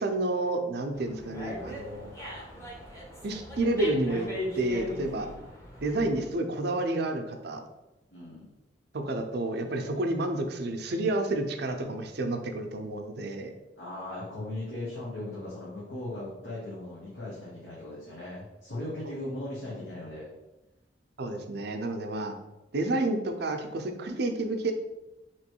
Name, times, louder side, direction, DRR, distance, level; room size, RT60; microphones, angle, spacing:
voice 1, 0.0-2.1 3.2-4.3 4.6-5.3 5.8-7.6 8.9-13.5 19.0-19.1 21.2-22.3 22.7-24.7, right 2 dB, 65° right, 5 dB, 0.5 m, -30 dB
Dog, 0.9-6.3, left 1 dB, 15° left, 0.9 m, -39 dB
voice 2, 2.1-2.7 5.2-5.5 8.1-8.5 13.8-20.3, left 1 dB, 90° left, -7 dB, 1.1 m, -38 dB
3.1 x 3.0 x 4.4 m, 1.0 s
head